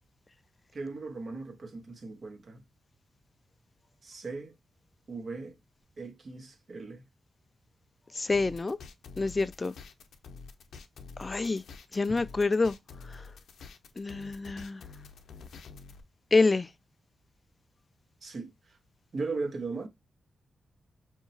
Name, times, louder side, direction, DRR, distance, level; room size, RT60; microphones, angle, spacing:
voice 1, 0.7-2.6 4.0-4.5 5.1-5.6 6.0-7.0 18.2-18.8 19.1-19.9, right 3 dB, 55° right, 1.3 m, -38 dB
voice 2, 8.2-8.8 9.2-9.7 11.2-11.6 11.9-12.7 13.1-13.2 14.0-14.8 16.3-16.7, left 3 dB, 30° left, 0.3 m, -27 dB
sound 1, 8.3-16.0, left 5 dB, 80° left, 0.6 m, -48 dB
4.4 x 2.8 x 2.7 m
cardioid pair, 80°, 0 cm